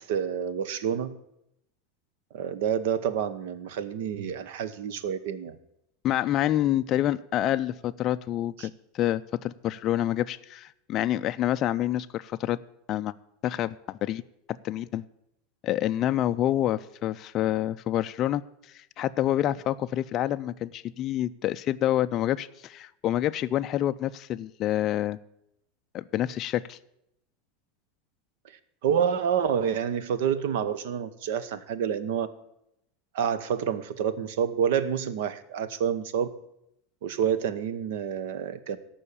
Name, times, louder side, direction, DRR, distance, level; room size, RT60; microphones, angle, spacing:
voice 1, 0.1-1.1 2.3-5.6 8.6-8.7 28.8-32.3 33.1-36.3 37.0-38.8, right 8 dB, 65° right, 14 dB, 0.9 m, -28 dB
voice 2, 6.0-12.6 12.9-13.1 13.4-14.2 14.6-15.0 15.6-18.4 18.7-25.2 25.9-26.8, left 12 dB, 30° left, 10 dB, 0.3 m, -27 dB
14.0 x 5.6 x 8.5 m, 0.80 s
supercardioid pair, 170°, 0 cm